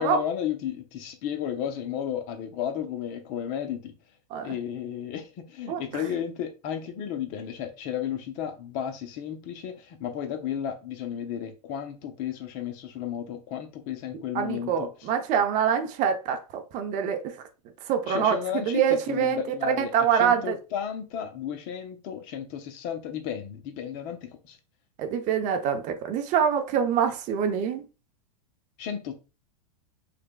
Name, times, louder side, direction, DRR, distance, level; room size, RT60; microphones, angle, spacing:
voice 1, 0.0-3.9 4.4-15.1 18.0-24.6 28.8-29.2, left 9 dB, 45° left, 0.7 m, -33 dB
voice 2, 14.3-17.3 17.9-18.4 18.7-19.4 19.8-20.6 25.0-27.8, right 8 dB, 40° right, 0.7 m, -25 dB
4.9 x 2.3 x 2.3 m
hypercardioid pair, 110°, 20 cm